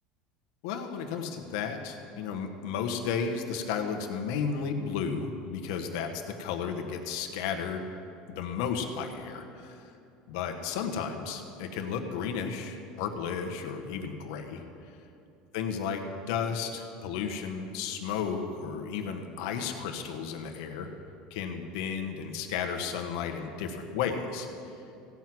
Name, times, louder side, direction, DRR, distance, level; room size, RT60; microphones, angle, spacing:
voice 1, 0.6-7.9 8.3-9.9 10.3-14.6 15.5-20.9 21.3-24.5, left 6 dB, 75° left, 4 dB, 1.3 m, -33 dB
16.0 x 6.1 x 7.8 m, 2.7 s
supercardioid pair, 130°, 3 cm